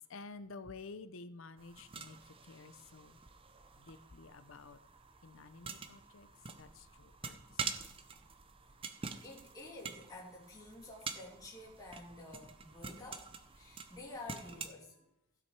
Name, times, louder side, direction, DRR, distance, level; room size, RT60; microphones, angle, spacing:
voice 1, 0.0-3.2 3.7-4.8 5.2-7.6 7.9-8.0, left 4 dB, 65° left, 12 dB, 0.7 m, -52 dB
sound 1, 1.6-14.7, right 5 dB, 25° right, 0.6 m, -47 dB
voice 2, 9.2-13.2 13.5-15.1, left 2 dB, 15° left, -5 dB, 2.5 m, -50 dB
16.0 x 6.0 x 4.7 m, 0.88 s
head